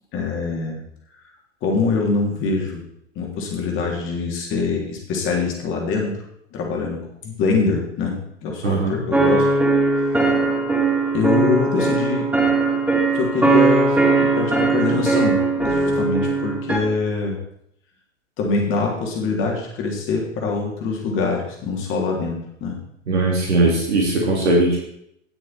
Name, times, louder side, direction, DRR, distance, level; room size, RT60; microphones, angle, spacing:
voice 1, 0.1-0.8 1.6-2.8 3.2-6.2 6.5-9.5 10.1-10.3 11.1-12.3 13.1-17.4 18.4-22.8, left 4 dB, 35° left, 0 dB, 3.3 m, -24 dB
voice 2, 8.6-9.0 23.1-24.8, right 2 dB, 65° right, -2 dB, 2.9 m, -19 dB
sound 1, 9.1-16.8, right 3 dB, 5° right, 2.8 m, -19 dB
18.5 x 6.4 x 4.4 m, 0.73 s
figure-of-eight pair, 90°, 37 cm